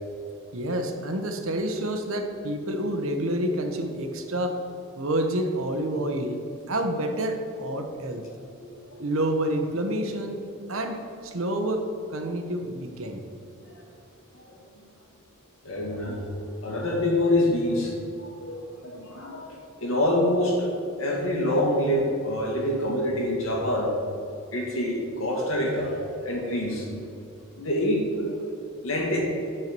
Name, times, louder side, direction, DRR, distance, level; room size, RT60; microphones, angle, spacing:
voice 1, 0.5-4.6 5.0-8.2 9.0-10.4 10.7-11.8 12.1-13.2, right 1 dB, 75° right, 5 dB, 1.0 m, -28 dB
voice 2, 8.6-9.0 12.2-12.3 13.6-13.7 14.3-14.6 15.6-17.9 18.4-20.7 21.0-23.9 24.5-26.9 27.6-28.4 28.8-29.2, left 1 dB, 75° left, -2 dB, 2.0 m, -26 dB
9.2 x 4.5 x 6.0 m, 2.7 s
head